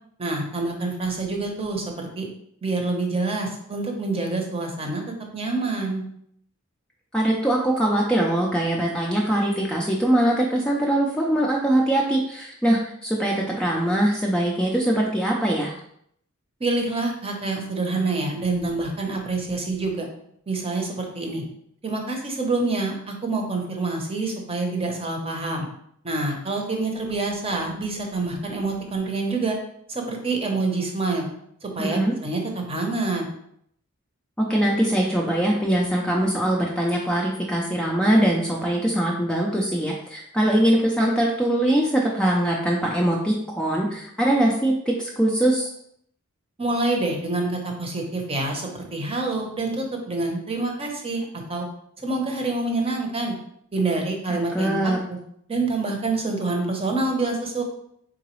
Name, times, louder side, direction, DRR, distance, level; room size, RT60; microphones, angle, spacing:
voice 1, 0.2-2.3 2.6-5.0 5.3-6.0 16.6-20.1 20.5-21.4 21.8-25.7 26.0-29.6 29.9-31.3 31.6-33.3 46.6-51.7 52.0-53.3 53.7-55.2 55.5-57.6, right 3 dB, 25° right, 2 dB, 0.8 m, -26 dB
voice 2, 7.1-15.7 31.8-32.1 34.4-45.7 54.3-55.0, right 1 dB, 5° left, -2 dB, 0.4 m, -22 dB
3.8 x 3.8 x 3.1 m, 0.70 s
head